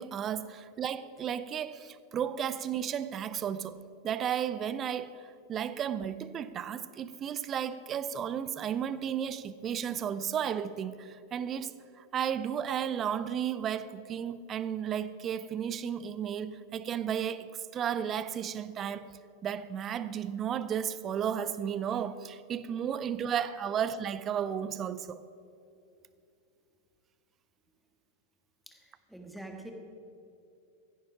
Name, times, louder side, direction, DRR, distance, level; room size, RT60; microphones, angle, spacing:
voice 1, 0.0-3.8 4.0-11.7 12.0-19.1 19.4-25.2, right 8 dB, 30° right, 0.5 m, -33 dB
voice 2, 28.7-29.7, right 2 dB, ahead, 1.5 m, -46 dB
15.5 x 10.0 x 4.9 m
figure-of-eight pair, 90°, 0 cm